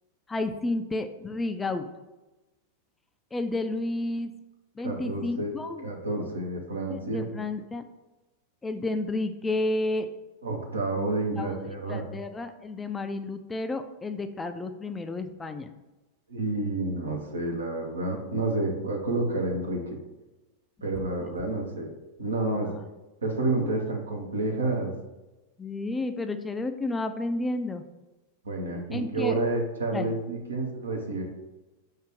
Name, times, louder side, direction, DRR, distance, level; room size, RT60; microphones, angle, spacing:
voice 1, 0.3-1.9 3.3-4.3 4.8-5.9 6.9-7.8 8.6-10.1 11.4-11.5 11.9-15.7 21.2-21.3 22.5-22.7 23.6-23.7 25.6-27.8 28.9-29.4 29.9-30.1, left 2 dB, 15° left, 8 dB, 0.3 m, -31 dB
voice 2, 4.8-5.6 5.8-7.2 10.4-12.0 16.3-19.8 20.8-21.9 22.2-22.7 23.2-24.9 28.4-31.2, right 2 dB, 75° right, 1 dB, 0.8 m, -29 dB
4.7 x 2.4 x 4.6 m, 1.1 s
figure-of-eight pair, 90°, 0 cm